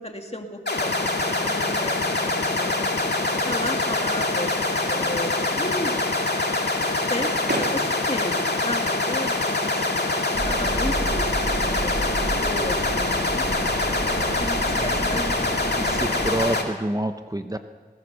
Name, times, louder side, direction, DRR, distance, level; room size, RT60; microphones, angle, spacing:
voice 1, 0.0-3.0 3.4-6.1 6.8-10.0 10.4-11.3 11.6-16.0, left 1 dB, 40° left, 3 dB, 2.4 m, -34 dB
sound 1, 0.6-10.9, right 1 dB, 80° right, 3.3 m, -40 dB
sound 2, 0.7-16.6, left 2 dB, 85° left, 2.4 m, -24 dB
sound 3, 10.3-16.3, right 1 dB, 65° right, 2.7 m, -31 dB
voice 2, 15.7-17.6, right 1 dB, 20° right, 7 dB, 1.0 m, -27 dB
21.0 x 18.0 x 6.9 m, 1.4 s
wide cardioid pair, 50°, 17 cm